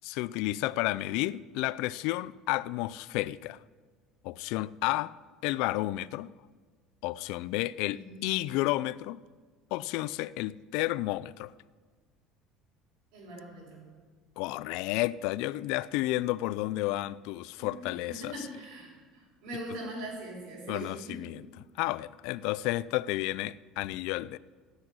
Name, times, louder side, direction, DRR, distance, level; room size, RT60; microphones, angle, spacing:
voice 1, 0.0-3.6 4.2-5.1 5.4-6.3 7.0-9.2 9.7-11.5 14.4-18.3 20.7-21.4 21.8-24.4, left 17 dB, 70° left, 0.4 m, -31 dB
voice 2, 7.9-8.2 13.1-13.9 17.6-21.2, right 1 dB, 75° right, 5.8 m, -42 dB
13.5 x 8.1 x 9.5 m
cardioid pair, 160°, 0 cm